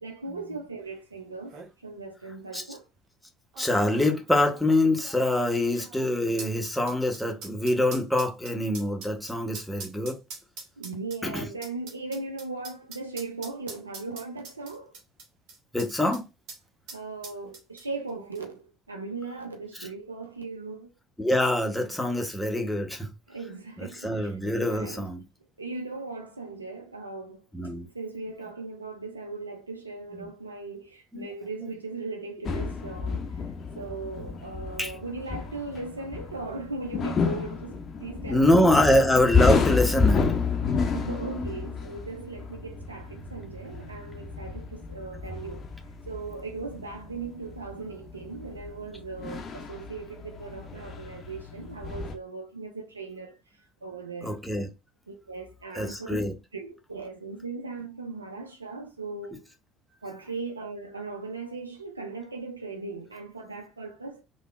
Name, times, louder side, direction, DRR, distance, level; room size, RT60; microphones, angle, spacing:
voice 1, 0.0-1.6 1.8-2.9 10.8-15.0 16.9-20.9 23.3-24.4 24.7-25.1 25.6-27.5 27.8-33.3 33.8-39.0 40.9-45.7 46.1-53.4 53.8-54.4 55.1-59.4 60.0-64.2, right 3 dB, 85° right, 0.4 m, -38 dB
sound 1, 1.0-1.1 1.3-1.7 2.5-2.6 3.5-16.2 16.5-16.6 16.9-18.1 18.4-18.5, right 4 dB, 60° right, 0.8 m, -44 dB
voice 2, 3.6-10.2 11.2-11.5 15.7-16.2 21.2-23.1 23.8-25.2 27.5-27.9 31.1-31.2 34.8-34.9 38.3-40.3 54.2-54.7 55.8-56.3, left 1 dB, 5° left, 0.8 m, -24 dB
sound 2, 32.5-52.2, left 5 dB, 45° left, 0.5 m, -30 dB
3.4 x 2.1 x 2.3 m
figure-of-eight pair, 55°, 0 cm